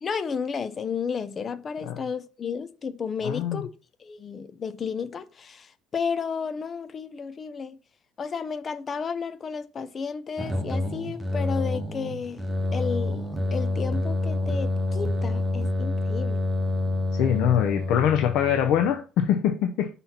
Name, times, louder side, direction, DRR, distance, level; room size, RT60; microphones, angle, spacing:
voice 1, 0.0-3.7 4.0-7.8 8.2-12.4 12.7-16.4, left 6 dB, 30° left, 0.6 m, -32 dB
voice 2, 3.2-3.6 17.1-19.9, left 9 dB, 65° left, 0.8 m, -23 dB
sound 1, 10.4-19.0, left 2 dB, 10° right, 1.1 m, -28 dB
5.6 x 4.1 x 5.8 m
cardioid pair, 145°, 0 cm